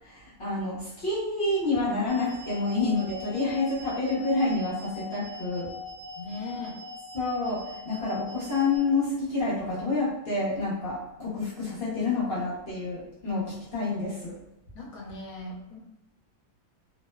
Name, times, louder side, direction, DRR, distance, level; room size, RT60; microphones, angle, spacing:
voice 1, 0.0-5.7 7.1-14.3, left 3 dB, 50° left, -9 dB, 0.8 m, -28 dB
sound 1, 2.1-8.8, left 4 dB, 65° right, 0.4 m, -42 dB
voice 2, 6.1-6.8 13.3-13.4 13.8-13.9 14.7-15.8, left 2 dB, 70° left, -1 dB, 1.0 m, -39 dB
2.8 x 2.0 x 2.2 m, 0.88 s
omnidirectional pair, 1.6 m